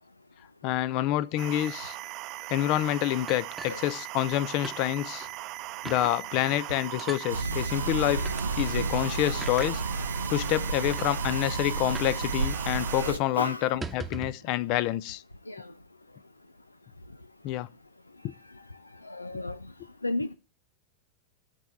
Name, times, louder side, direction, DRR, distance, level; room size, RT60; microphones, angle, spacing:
voice 1, 0.6-2.0 2.5-5.3 5.8-8.3 8.6-9.8 10.3-15.2 17.4-17.7 18.2-18.3, left 14 dB, 45° left, 0.6 m, -27 dB
sound 1, 1.4-13.1, right 18 dB, 40° right, 0.7 m, -39 dB
sound 2, 3.3-4.4 4.6-4.8 5.2-5.3 5.8-6.1 7.0-7.3 8.2-8.4 9.4-9.7 10.5-10.6 10.9-11.1 11.9-12.2 12.5-12.6 12.9-13.1 13.6-14.4, right 3 dB, 10° right, 1.0 m, -40 dB
sound 3, 7.3-13.2, right 3 dB, 80° right, 0.6 m, -31 dB
voice 2, 13.0-13.7 15.5-15.7 19.0-19.6 20.0-20.3, left 2 dB, 85° left, 0.5 m, -33 dB
13.5 x 4.6 x 8.7 m
figure-of-eight pair, 90°, 0 cm